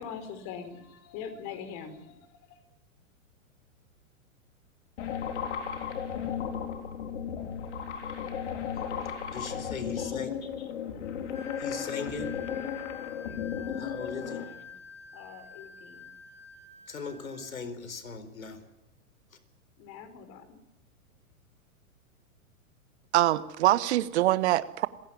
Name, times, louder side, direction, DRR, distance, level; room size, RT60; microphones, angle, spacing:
voice 1, 0.0-2.2 2.5-2.6 8.8-9.7 10.0-10.2 12.5-14.7 15.1-16.1 19.8-20.6, left 7 dB, 40° left, 10 dB, 4.9 m, -45 dB
sound 1, 5.0-14.4, left 8 dB, 55° left, 3.8 m, -35 dB
voice 2, 9.3-10.7 11.6-12.3 13.8-14.6 16.9-18.6, left 4 dB, 75° left, 12 dB, 4.4 m, -39 dB
Wind instrument woodwind instrument, 11.3-17.5, left 7 dB, 15° left, 5.5 m, -47 dB
voice 3, 23.1-24.9, right 15 dB, 50° right, 15 dB, 1.4 m, -24 dB
27.0 x 16.5 x 9.7 m, 0.90 s
figure-of-eight pair, 105°, 41 cm